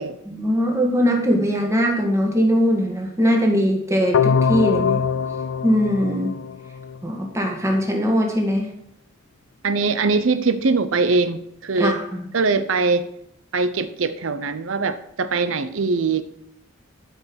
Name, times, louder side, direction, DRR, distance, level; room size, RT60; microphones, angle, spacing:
voice 1, 0.3-5.0 5.6-6.3 7.0-8.7 11.8-12.3, equal, 15° right, 1.9 m, -20 dB
sound 1, 4.1-7.1, left 6 dB, 85° left, 0.4 m, -23 dB
voice 2, 9.6-12.0 12.3-13.1 13.5-16.2, right 4 dB, 80° right, 0.7 m, -22 dB
12.5 x 5.5 x 6.2 m
head